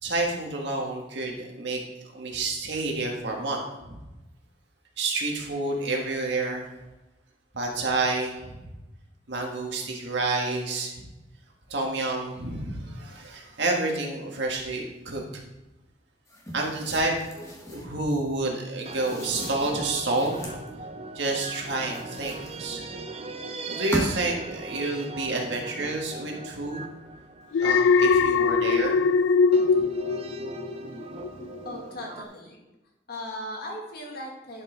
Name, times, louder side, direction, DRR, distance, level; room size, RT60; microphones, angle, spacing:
voice 1, 0.0-1.8 2.1-4.0 5.0-6.7 7.5-8.7 9.3-11.1 11.7-15.2 16.5-20.5 21.1-22.8 23.7-26.8 27.6-28.9, right 2 dB, 65° right, 0 dB, 1.7 m, -29 dB
sound 1, 16.3-17.9 18.8-20.7 21.3-22.9 23.6-24.4, equal, 15° left, 1.4 m, -37 dB
sound 2, 17.2-17.5 18.9-28.5 29.5-32.2, right 2 dB, 35° right, 0.6 m, -40 dB
Alarm, 27.5-30.9 31.2-31.6, left 5 dB, 85° left, 0.3 m, -21 dB
voice 2, 31.6-32.6 33.1-34.6, left 1 dB, 55° left, -1 dB, 2.0 m, -37 dB
11.0 x 5.5 x 3.9 m, 1.0 s
head